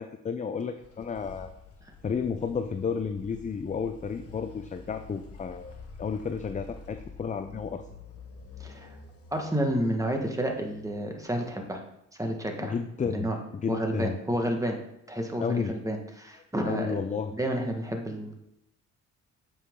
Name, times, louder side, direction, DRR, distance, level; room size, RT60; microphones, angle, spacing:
voice 1, 0.0-1.5 2.0-7.9 12.6-14.2 15.4-15.7 16.6-17.3, left 6 dB, 25° left, 9 dB, 0.5 m, -32 dB
sound 1, 0.6-11.4, left 4 dB, 50° left, 1.4 m, -48 dB
voice 2, 8.6-9.0 9.3-11.8 12.2-12.7 13.1-13.4 13.7-14.8 15.1-17.0 17.3-18.3, right 1 dB, 10° right, 2 dB, 1.5 m, -30 dB
8.5 x 5.7 x 3.8 m, 0.82 s
cardioid pair, 90°, 30 cm